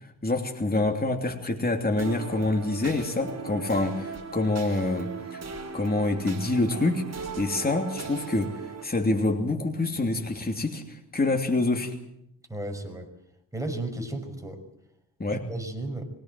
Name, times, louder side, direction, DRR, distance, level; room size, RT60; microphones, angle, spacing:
voice 1, 0.2-5.4 5.7-7.0 7.4-12.0 15.2-15.4, left 2 dB, 25° left, 3 dB, 3.0 m, -26 dB
sound 1, 2.0-8.8, right 5 dB, 40° right, 4.5 m, -38 dB
voice 2, 12.5-13.1 13.5-14.6 15.3-16.1, right 2 dB, 10° right, 4 dB, 5.8 m, -34 dB
24.0 x 18.5 x 7.8 m, 0.80 s
cardioid pair, 85°, 38 cm